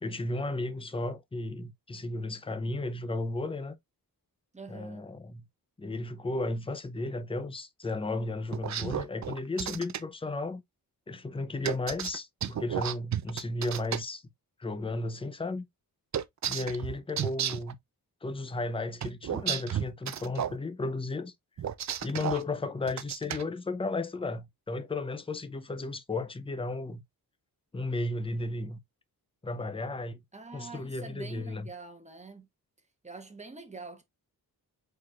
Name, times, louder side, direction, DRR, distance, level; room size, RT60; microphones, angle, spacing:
voice 1, 0.0-3.8 4.7-5.4 5.8-10.6 11.1-14.2 14.6-15.7 16.5-17.8 18.2-21.3 22.0-27.0 27.7-28.8 29.4-30.2 30.5-31.7, left 2 dB, 15° left, 0.6 m, -34 dB
voice 2, 4.5-5.1 16.5-16.9 30.3-32.5 33.0-34.0, right 4 dB, 20° right, 1.1 m, -45 dB
sound 1, 8.5-10.0 11.6-14.0 16.1-17.7 19.0-20.6 21.6-22.4 22.9-23.4, right 9 dB, 45° right, 0.5 m, -32 dB
4.6 x 4.2 x 2.4 m
wide cardioid pair, 95°, 38 cm